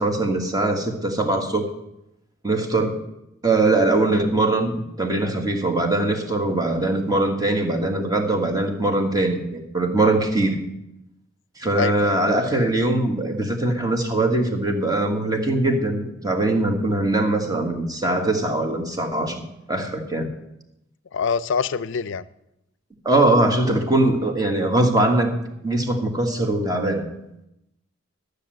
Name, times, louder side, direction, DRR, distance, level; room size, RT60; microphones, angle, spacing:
voice 1, 0.0-1.7 2.4-3.0 3.4-10.6 11.6-19.4 19.7-20.3 23.0-25.3 25.6-27.0, right 2 dB, 20° right, 4 dB, 1.5 m, -21 dB
voice 2, 11.7-12.2 21.1-22.3, left 6 dB, 65° left, 17 dB, 0.5 m, -25 dB
12.5 x 6.7 x 7.6 m, 0.86 s
head